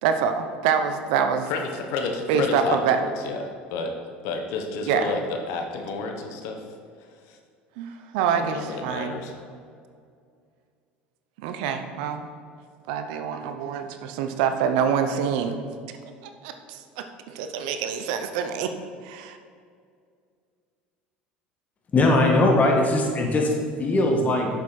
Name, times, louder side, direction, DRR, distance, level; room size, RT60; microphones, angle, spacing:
voice 1, 0.0-1.5 2.3-3.0 4.9-5.1 7.8-9.2 11.4-12.3 12.9-15.6 16.2-18.7 19.0-19.4, right 7 dB, 70° right, 7 dB, 0.7 m, -26 dB
voice 2, 1.5-3.4 3.7-3.9 4.2-6.6 7.3-7.4 8.3-9.4, left 4 dB, 65° left, 4 dB, 1.1 m, -30 dB
voice 3, 21.9-23.5 23.8-24.5, left 2 dB, 30° left, 0 dB, 1.9 m, -20 dB
8.1 x 6.7 x 4.3 m, 2.2 s
hypercardioid pair, 75°, 5 cm